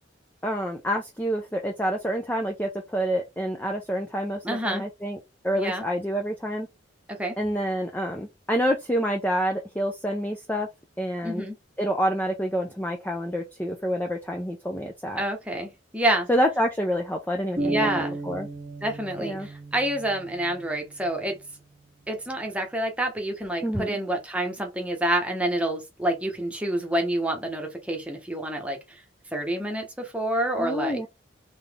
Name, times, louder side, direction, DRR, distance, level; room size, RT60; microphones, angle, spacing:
voice 1, 0.4-5.2 5.4-6.7 7.4-10.7 11.0-11.5 11.8-15.2 16.3-18.5 19.2-19.5 23.6-24.0 30.6-31.1, equal, 10° left, 0.6 m, -27 dB
voice 2, 4.4-4.8 5.5-5.8 7.1-7.4 11.2-11.6 15.2-16.3 17.6-18.2 18.8-21.4 22.1-29.0 29.3-31.0, right 1 dB, 5° right, 1.2 m, -28 dB
sound 1, 17.6-21.3, right 2 dB, 30° right, 1.0 m, -34 dB
4.1 x 3.4 x 3.5 m
head